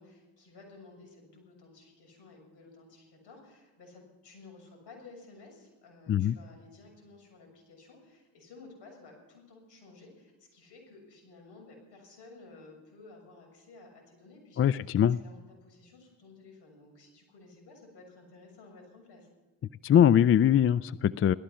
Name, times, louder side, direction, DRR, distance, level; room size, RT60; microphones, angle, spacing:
voice 1, 0.0-19.3, left 3 dB, 65° left, 2 dB, 7.0 m, -54 dB
voice 2, 14.6-15.2 19.8-21.3, left 9 dB, 35° left, 19 dB, 0.4 m, -22 dB
17.0 x 14.0 x 5.8 m, 1.2 s
supercardioid pair, 60°, 43 cm